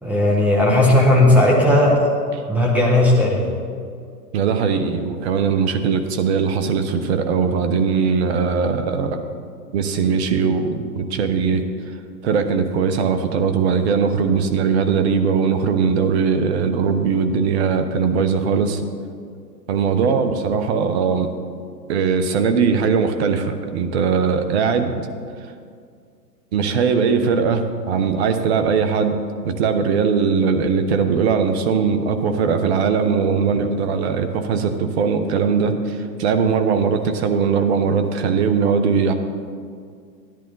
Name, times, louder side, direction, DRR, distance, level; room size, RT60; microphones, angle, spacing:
voice 1, 0.0-2.1 2.5-3.5, left 1 dB, 5° right, -3 dB, 1.4 m, -15 dB
voice 2, 4.3-9.2 9.7-11.6 12.2-18.8 19.7-21.3 21.9-25.1 26.5-29.2 29.4-39.1, right 6 dB, 40° right, 8 dB, 1.1 m, -20 dB
13.5 x 10.5 x 4.0 m, 2.2 s
hypercardioid pair, 125°, 50 cm